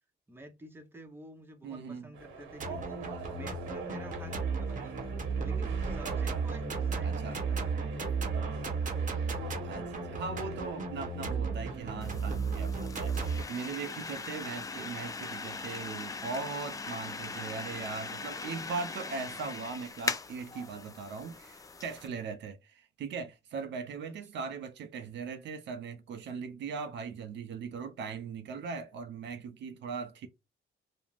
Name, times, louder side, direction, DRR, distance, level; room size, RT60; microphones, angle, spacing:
voice 1, 0.3-5.1 5.4-7.7 12.5-12.6 24.0-24.1, right 1 dB, 10° right, 0.7 m, -50 dB
voice 2, 1.6-2.1 7.0-7.4 9.6-30.3, right 5 dB, 65° right, 0.5 m, -39 dB
sound 1, 2.1-12.3, right 5 dB, 80° right, 1.0 m, -45 dB
sound 2, 2.6-13.4, right 4 dB, 40° right, 0.8 m, -34 dB
sound 3, 12.0-22.1, left 4 dB, 15° left, 0.3 m, -40 dB
2.4 x 2.0 x 3.2 m
cardioid pair, 90°, 20 cm